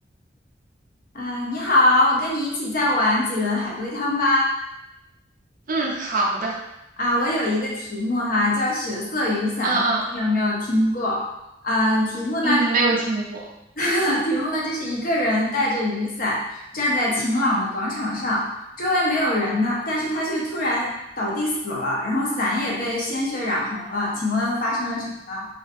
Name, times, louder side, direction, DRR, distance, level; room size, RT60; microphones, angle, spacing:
voice 1, 1.1-4.5 7.0-9.8 10.1-11.2 11.6-12.7 13.8-18.5 18.8-20.9 21.2-25.5, left 1 dB, 50° left, -3 dB, 0.6 m, -23 dB
voice 2, 5.7-6.5 9.6-10.0 12.4-13.4, right 2 dB, 50° right, -2 dB, 0.5 m, -23 dB
2.5 x 2.3 x 2.5 m, 0.89 s
head